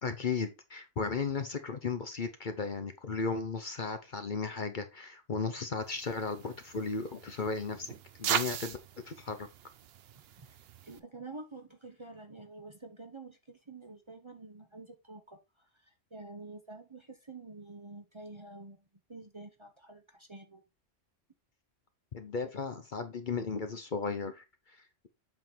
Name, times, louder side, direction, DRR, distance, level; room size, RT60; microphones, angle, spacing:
voice 1, 0.0-7.9 8.2-8.8 9.0-9.5 22.1-25.1, left 4 dB, 45° left, 0.8 m, -35 dB
sound 1, 5.9-11.0, right 9 dB, 60° right, 0.8 m, -39 dB
voice 2, 10.9-15.4 15.8-18.8 19.1-20.6, right 3 dB, 25° right, 0.8 m, -48 dB
7.8 x 3.8 x 4.4 m
omnidirectional pair, 1.3 m